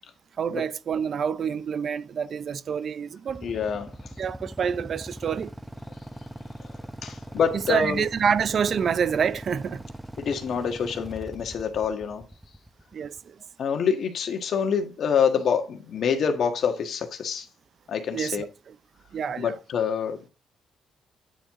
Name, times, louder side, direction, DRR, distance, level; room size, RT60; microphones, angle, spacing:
voice 1, 0.4-3.5 4.2-5.5 7.7-9.8 12.9-13.4 18.1-18.7 19.1-19.5, right 7 dB, 55° right, 0.5 m, -27 dB
Motorcycle / Idling, 3.3-13.2, right 1 dB, 5° right, 0.8 m, -41 dB
voice 2, 3.4-3.9 7.0-8.0 10.2-12.2 13.6-17.5 17.9-18.4 19.4-20.3, left 7 dB, 60° left, 1.4 m, -26 dB
9.2 x 4.6 x 3.6 m
cardioid pair, 90°, 0 cm